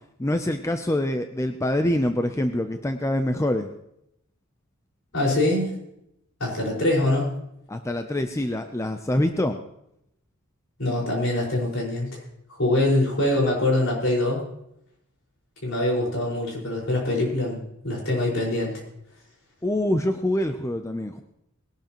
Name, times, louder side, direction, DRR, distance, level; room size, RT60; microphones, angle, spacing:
voice 1, 0.2-3.7 7.7-9.6 19.6-21.2, left 1 dB, 15° left, 7 dB, 0.5 m, -25 dB
voice 2, 5.1-5.7 6.4-7.3 10.8-12.1 12.6-14.4 15.6-18.7, left 1 dB, 65° left, -3 dB, 5.1 m, -24 dB
20.5 x 12.0 x 3.0 m, 0.79 s
head